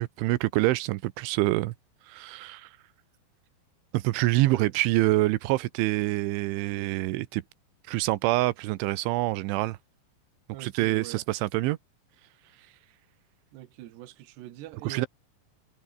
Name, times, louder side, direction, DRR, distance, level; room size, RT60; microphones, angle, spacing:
voice 1, 0.0-1.7 2.1-2.7 3.9-7.4 7.9-9.8 10.6-11.8 14.8-15.1, right 19 dB, 90° right, 3.3 m, -26 dB
voice 2, 4.3-4.7 10.5-11.2 13.5-15.1, right 14 dB, 70° right, 3.4 m, -43 dB
omnidirectional pair, 5.3 m